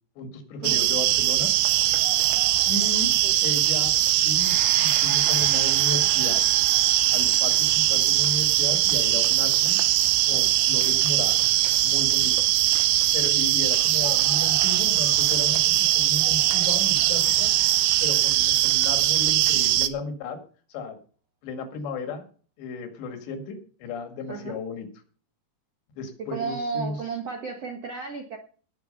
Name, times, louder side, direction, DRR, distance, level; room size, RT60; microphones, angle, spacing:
voice 1, 0.2-1.5 2.7-3.1 3.4-3.9 4.2-6.4 7.1-9.8 10.3-12.5 13.1-17.5 18.0-20.4 20.7-21.0 21.4-22.3 22.6-24.9 26.0-27.0, left 3 dB, 75° left, 6 dB, 4.3 m, -34 dB
sound 1, 0.6-19.9, right 14 dB, 85° right, 3.2 m, -21 dB
Gong, 4.3-12.7 13.1-13.3, right 1 dB, 20° right, 2.9 m, -45 dB
voice 2, 24.3-24.6 26.3-28.4, right 5 dB, 65° right, 3 dB, 1.6 m, -33 dB
19.0 x 6.5 x 5.6 m, 0.41 s
omnidirectional pair, 5.1 m